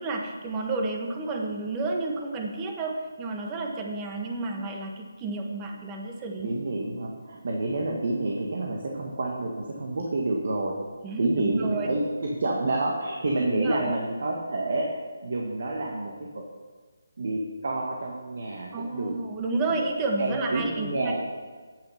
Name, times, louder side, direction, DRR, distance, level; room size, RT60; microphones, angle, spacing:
voice 1, 0.0-6.5 11.0-11.9 13.5-14.0 18.7-21.2, right 3 dB, 20° right, 1 dB, 1.3 m, -31 dB
voice 2, 6.4-10.7 11.2-14.9 15.2-16.4 17.2-19.1 20.2-21.2, right 2 dB, 60° right, -1 dB, 1.6 m, -28 dB
9.1 x 8.7 x 5.7 m, 1.4 s
figure-of-eight pair, 155°, 0 cm